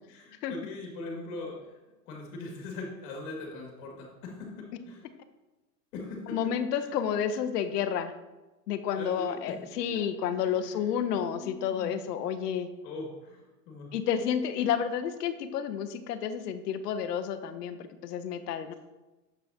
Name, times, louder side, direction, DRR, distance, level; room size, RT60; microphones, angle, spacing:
voice 1, 0.1-1.7 2.1-5.0 5.9-6.9 8.9-9.6 9.9-10.0 10.3-10.9 11.3-12.0 12.8-13.9, left 2 dB, 45° left, 0 dB, 2.1 m, -41 dB
voice 2, 6.3-8.1 8.7-12.7 13.9-18.7, left 8 dB, 70° left, 10 dB, 0.8 m, -30 dB
7.1 x 5.5 x 2.8 m, 1.1 s
hypercardioid pair, 130°, 50 cm